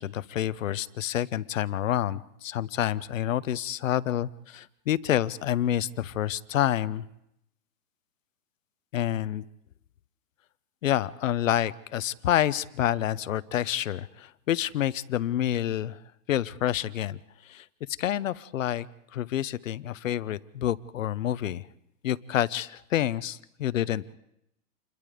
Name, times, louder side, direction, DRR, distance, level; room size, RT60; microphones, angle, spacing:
voice 1, 0.0-7.0 8.9-9.4 10.8-16.0 16.3-17.7 18.0-18.9 19.1-21.7 22.0-24.1, left 12 dB, 55° left, 16 dB, 0.8 m, -28 dB
28.5 x 21.5 x 5.0 m, 0.79 s
supercardioid pair, 180°, 46 cm